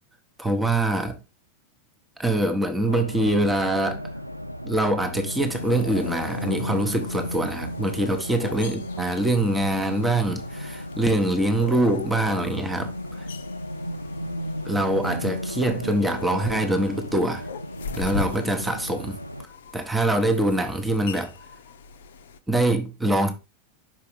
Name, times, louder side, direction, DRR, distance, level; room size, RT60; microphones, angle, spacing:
voice 1, 0.4-1.2 2.2-4.0 4.6-12.9 13.2-13.3 14.6-17.4 18.0-19.1 19.7-21.3 22.5-23.3, right 1 dB, 5° right, 0.9 m, -24 dB
Race car auto racing, 2.9-19.5, equal, 90° right, 0.3 m, -34 dB
sound 1, 5.4-22.4, left 6 dB, 60° left, 0.5 m, -41 dB
5.9 x 4.8 x 3.4 m
figure-of-eight pair, 90°, 0 cm